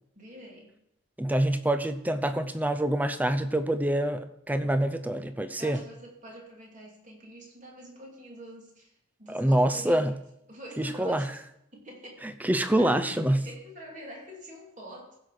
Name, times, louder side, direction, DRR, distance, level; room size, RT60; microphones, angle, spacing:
voice 1, 0.1-0.7 5.6-10.1 10.5-11.4 11.7-12.2 12.8-15.2, equal, 35° right, -1 dB, 2.7 m, -46 dB
voice 2, 1.2-5.8 9.3-10.1 10.8-11.3 12.2-13.4, right 1 dB, 10° right, 10 dB, 0.5 m, -26 dB
15.5 x 6.1 x 4.9 m, 0.78 s
head